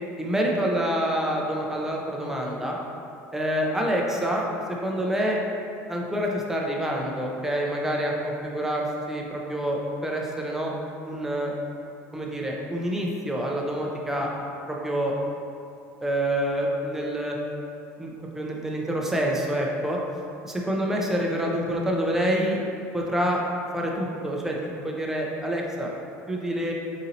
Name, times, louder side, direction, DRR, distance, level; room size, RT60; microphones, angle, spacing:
voice 1, 0.2-2.8 3.3-4.5 4.8-5.4 5.9-10.8 11.0-11.5 12.1-14.3 14.7-15.1 16.0-17.4 18.0-20.0 20.4-22.6 22.9-23.4 23.7-24.6 24.8-25.9 26.3-26.7, equal, 5° right, -2 dB, 0.5 m, -27 dB
4.1 x 2.7 x 3.8 m, 2.7 s
cardioid pair, 150°, 7 cm